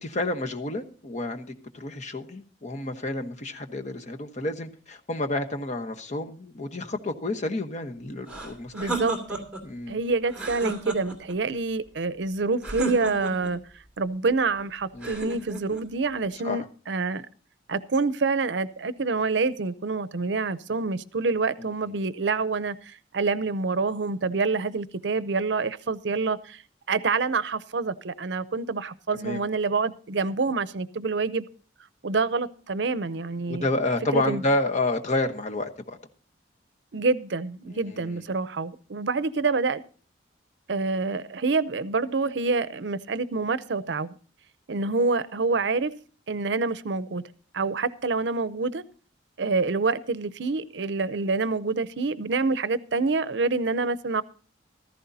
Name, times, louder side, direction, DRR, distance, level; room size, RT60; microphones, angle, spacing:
voice 1, 0.0-1.5 1.7-8.9 9.6-10.0 14.9-15.1 16.4-16.6 21.6-21.9 29.1-29.4 33.5-36.0 37.7-38.2, left 2 dB, 40° left, 1.1 m, -30 dB
sound 1, 8.3-9.7 10.3-11.4 12.6-13.6 15.0-15.9, right 2 dB, 5° right, 2.7 m, -32 dB
voice 2, 8.7-9.4 9.9-13.6 14.0-17.3 17.7-26.6 26.9-31.5 32.0-33.7 34.1-34.4 36.9-39.8 40.7-44.2 44.7-45.9 46.3-47.2 47.5-48.8 49.4-54.2, right 4 dB, 70° right, 0.6 m, -27 dB
15.5 x 14.0 x 2.7 m
head